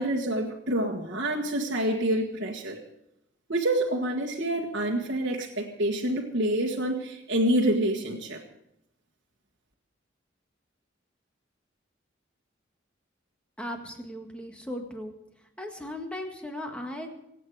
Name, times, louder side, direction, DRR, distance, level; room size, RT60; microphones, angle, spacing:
voice 1, 0.0-2.8 3.5-8.4, right 1 dB, 70° right, -4 dB, 1.6 m, -27 dB
voice 2, 13.6-15.1 15.6-17.1, left 1 dB, 5° left, 3 dB, 1.8 m, -37 dB
25.0 x 8.7 x 4.9 m, 0.83 s
head